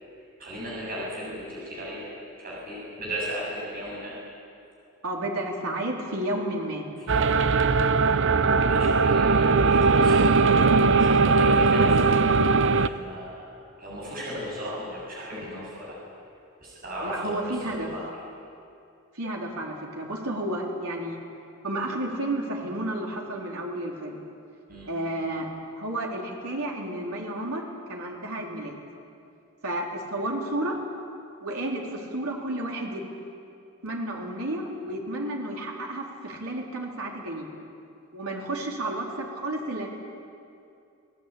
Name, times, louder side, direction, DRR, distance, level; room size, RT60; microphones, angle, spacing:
voice 1, 0.4-2.1 2.4-4.2 7.0-7.6 8.7-12.1 12.8-13.5 13.8-16.0 16.6-17.3 17.6-18.0 24.7-24.9, equal, 40° right, -5 dB, 7.6 m, -36 dB
voice 2, 5.0-6.8 17.0-17.9 19.1-21.2 21.6-24.2 24.9-28.8 29.6-30.8 31.4-33.0 33.8-37.5 38.1-39.9, right 1 dB, 85° right, -1 dB, 3.9 m, -31 dB
sound 1, 7.1-12.9, right 4 dB, 60° right, 0.7 m, -20 dB
25.5 x 18.0 x 8.7 m, 2.6 s
head